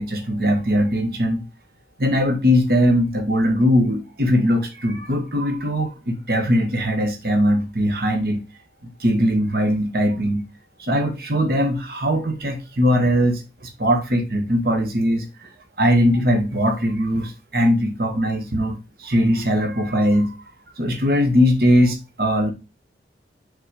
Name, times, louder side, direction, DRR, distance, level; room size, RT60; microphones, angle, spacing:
voice 1, 0.0-1.4 2.0-8.4 9.0-10.5 10.8-15.3 15.8-20.3 20.8-22.5, equal, 55° right, 1.3 m, -20 dB
5.9 x 3.9 x 4.8 m
head